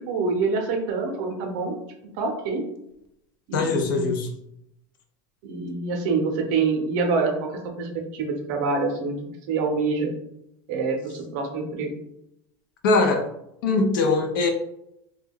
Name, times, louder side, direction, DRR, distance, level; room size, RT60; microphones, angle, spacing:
voice 1, 0.1-1.8 2.2-2.6 3.5-4.1 5.4-7.5 7.8-9.2 9.5-10.1 10.7-11.9, right 4 dB, 50° right, 3 dB, 0.6 m, -26 dB
voice 2, 3.5-4.3 12.8-13.3 13.6-14.5, left 3 dB, 80° left, 4 dB, 0.6 m, -21 dB
2.2 x 2.2 x 3.5 m, 0.80 s
supercardioid pair, 175°, 11 cm